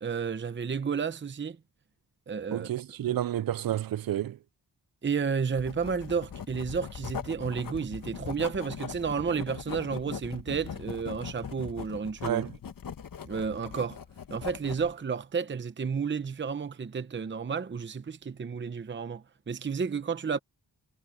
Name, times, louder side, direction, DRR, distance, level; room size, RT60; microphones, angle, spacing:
voice 1, 0.0-1.6 2.3-2.7 3.0-3.2 5.0-12.4 13.2-14.0 14.3-20.4, right 6 dB, 30° right, 0.8 m, -32 dB
voice 2, 2.5-4.4 12.2-12.5, right 12 dB, 60° right, 0.5 m, -30 dB
Writing, 5.6-14.9, left 7 dB, 55° left, 1.3 m, -40 dB
wide cardioid pair, 145°, 40 cm